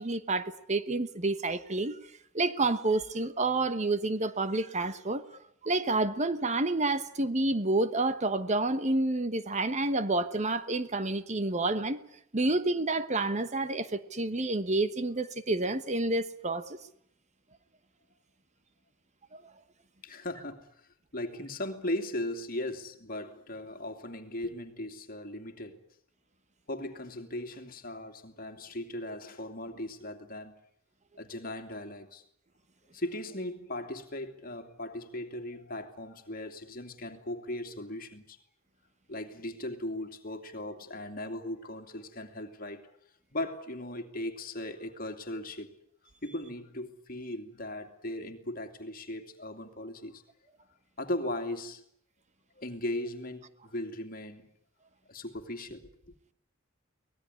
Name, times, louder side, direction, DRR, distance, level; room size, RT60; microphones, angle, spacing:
voice 1, 0.0-2.0 2.3-5.2 5.6-12.0 12.3-16.8, right 2 dB, 35° right, 1.2 m, -29 dB
voice 2, 20.0-25.8 26.7-30.5 31.1-32.2 32.9-38.4 39.1-42.9 43.3-45.7 46.2-50.2 51.0-51.8 52.6-54.5 55.1-56.1, left 1 dB, 45° left, 2.7 m, -38 dB
24.5 x 19.0 x 9.8 m
head